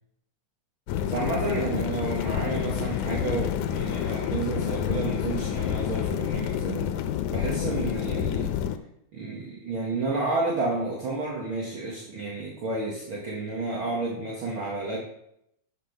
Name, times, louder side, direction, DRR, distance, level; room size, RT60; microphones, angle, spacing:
sound 1, 0.9-8.8, left 10 dB, 90° left, 2.2 m, -28 dB
voice 1, 1.1-6.9 7.3-8.5 9.1-15.0, right 3 dB, 45° right, -3 dB, 2.3 m, -31 dB
13.0 x 6.2 x 5.3 m, 0.78 s
omnidirectional pair, 3.5 m